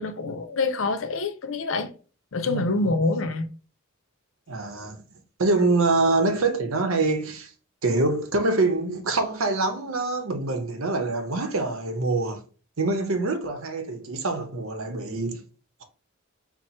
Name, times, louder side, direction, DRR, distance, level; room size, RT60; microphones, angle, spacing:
voice 1, 0.0-1.9 2.3-3.5, left 3 dB, 65° left, 0.6 m, -26 dB
voice 2, 4.5-5.0 5.4-7.5 7.8-12.4 12.8-15.4, right 3 dB, 85° right, 0.9 m, -25 dB
4.3 x 2.1 x 4.3 m
head